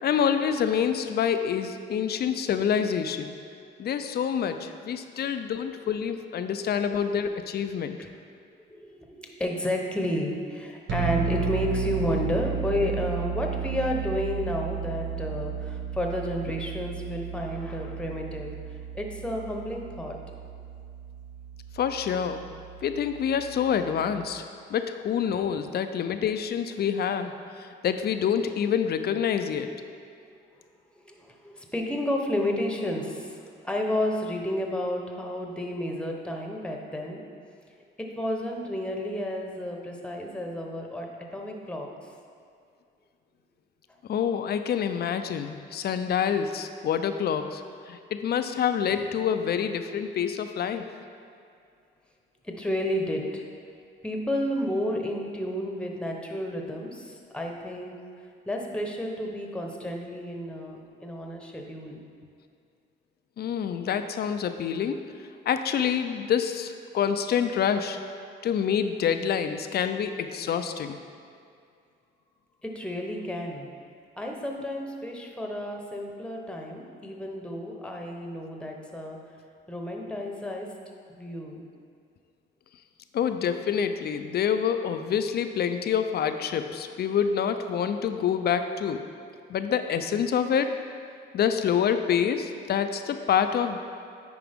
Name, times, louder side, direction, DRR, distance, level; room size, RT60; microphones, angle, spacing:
voice 1, 0.0-3.3 3.8-8.0 21.7-22.4 22.8-24.4 24.7-27.3 27.6-29.7 44.1-50.8 63.4-65.0 65.5-68.0 68.4-71.0 83.1-89.0 89.5-90.7 91.3-93.9, left 8 dB, 55° left, 8 dB, 0.5 m, -27 dB
voice 2, 8.7-18.5 18.9-20.2 30.2-30.4 31.0-37.2 38.0-41.9 52.4-53.4 54.0-57.9 58.5-62.0 72.6-73.7 74.2-79.2 79.7-80.7 81.1-81.6, left 1 dB, 5° left, 1 dB, 0.9 m, -31 dB
sound 1, 10.9-24.3, right 7 dB, 70° right, 0.9 m, -34 dB
9.5 x 4.8 x 3.6 m, 2.3 s
cardioid pair, 90°, 20 cm